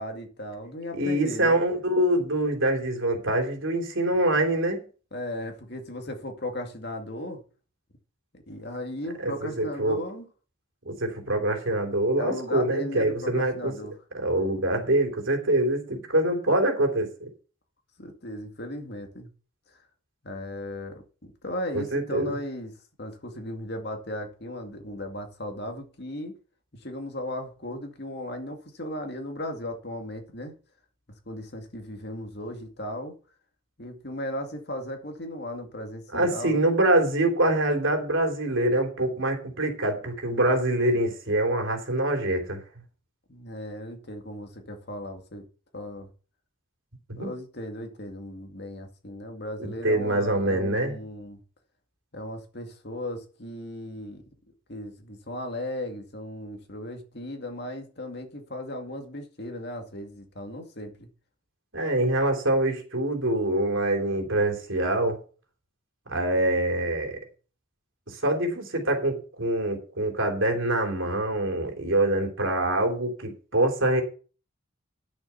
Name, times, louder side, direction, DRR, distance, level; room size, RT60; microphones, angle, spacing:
voice 1, 0.0-1.6 5.1-7.4 8.3-10.3 12.2-13.9 18.0-19.3 20.2-22.7 23.0-26.4 26.8-30.5 31.3-33.1 33.8-36.6 43.3-45.5 45.7-46.1 47.2-51.4 52.1-54.2 54.7-61.1, left 1 dB, 50° left, 2.2 m, -36 dB
voice 2, 0.9-4.8 9.2-10.0 10.8-13.7 14.1-17.3 21.7-22.3 36.1-42.6 47.1-47.3 49.6-51.0 61.7-65.2 66.1-67.2 68.1-74.0, right 1 dB, 70° right, 3.1 m, -25 dB
11.0 x 7.1 x 5.7 m
head